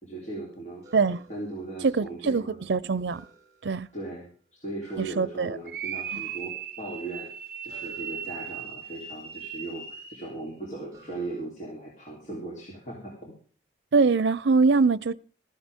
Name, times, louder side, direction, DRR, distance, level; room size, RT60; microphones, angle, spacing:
voice 1, 0.0-0.8 1.3-2.6 3.9-7.3 7.6-13.3, right 2 dB, 40° left, 3.5 m, -38 dB
sound 1, 0.8-2.3 3.1-4.3 4.8-6.0 7.7-9.8 10.9-11.4, right 2 dB, 20° right, 4.6 m, -56 dB
voice 2, 0.9-1.2 1.8-3.2 3.6-3.9 5.0-5.6 13.9-15.1, right 4 dB, 85° right, 0.5 m, -23 dB
sound 2, 5.7-10.4, right 8 dB, 50° right, 1.4 m, -37 dB
15.0 x 14.5 x 3.6 m
head